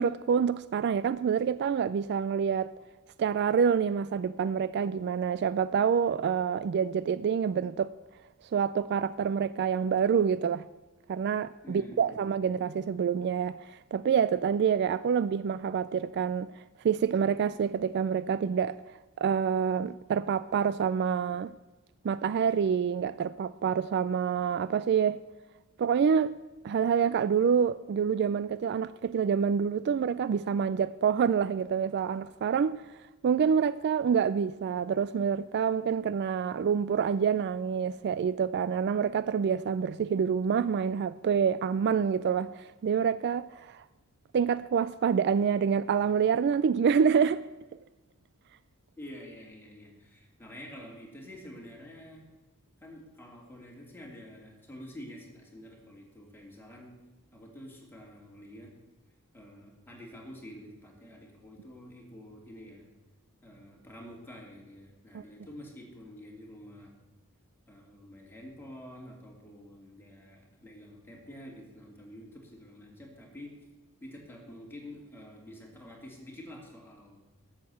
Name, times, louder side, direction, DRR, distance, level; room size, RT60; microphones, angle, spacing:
voice 1, 0.0-2.7 3.2-7.9 8.5-10.6 11.1-16.5 16.8-18.8 19.2-21.5 22.0-25.2 25.8-26.4 26.6-32.9 33.2-43.8 44.3-47.5 65.1-65.2, right 7 dB, 50° right, 0.3 m, -27 dB
voice 2, 11.6-12.2 49.0-52.3 52.8-56.9 57.3-58.7 59.3-62.9 63.4-66.9 67.7-73.6 74.0-77.2, equal, 10° left, 2.8 m, -48 dB
12.0 x 7.4 x 8.3 m
head